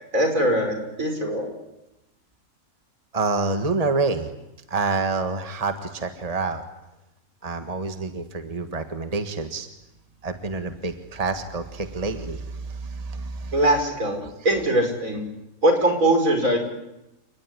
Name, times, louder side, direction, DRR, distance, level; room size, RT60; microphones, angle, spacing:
voice 1, 0.1-1.5 13.5-15.3 15.6-16.6, right 1 dB, 75° right, 5 dB, 5.7 m, -21 dB
voice 2, 3.1-4.3 4.7-6.6 7.4-9.7 10.2-13.6 14.2-14.3, right 3 dB, 25° right, 7 dB, 1.7 m, -27 dB
29.5 x 19.0 x 10.0 m, 0.92 s
omnidirectional pair, 1.4 m